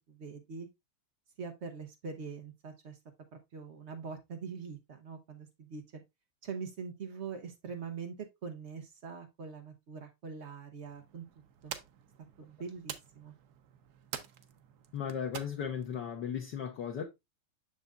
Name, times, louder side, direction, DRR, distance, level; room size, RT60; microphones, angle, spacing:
voice 1, 0.1-0.7 1.4-3.0 3.3-6.0 6.4-11.3 11.6-11.7 12.4-13.3, right 5 dB, 90° right, 0.5 m, -43 dB
sound 1, 10.8-16.0, right 9 dB, 65° right, 1.0 m, -47 dB
voice 2, 14.9-17.0, left 8 dB, 65° left, 1.4 m, -36 dB
7.0 x 6.5 x 2.3 m
omnidirectional pair, 2.3 m